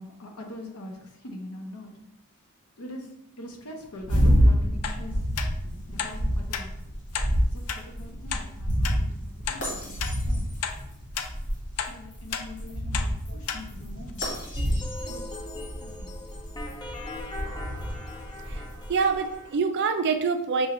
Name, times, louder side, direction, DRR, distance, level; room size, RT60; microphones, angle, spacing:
voice 1, 0.0-1.9 2.8-3.1 3.4-5.2 5.9-6.7 7.5-10.5 11.9-14.3 14.7-14.8 15.1-15.3 15.8-16.1, left 1 dB, 70° left, 3 dB, 0.8 m, -42 dB
sound 1, 4.0-19.2, equal, 55° left, 1.6 m, -28 dB
sound 2, 4.8-5.0 5.4-5.5 6.0-6.1 6.5-6.7 7.1-7.3 7.7-7.8 8.3-8.4 8.8-9.0 9.5-9.6 10.0-10.1 10.6-10.8 11.1-11.3 11.8-11.9 12.3-12.5 12.9-13.1 13.5-13.6 14.1-14.2, left 8 dB, 90° left, 0.4 m, -32 dB
sound 3, 14.6-19.6, left 2 dB, 20° left, 0.4 m, -40 dB
voice 2, 18.9-20.7, right 5 dB, 50° right, 7 dB, 0.4 m, -25 dB
5.4 x 2.5 x 3.0 m, 0.80 s
head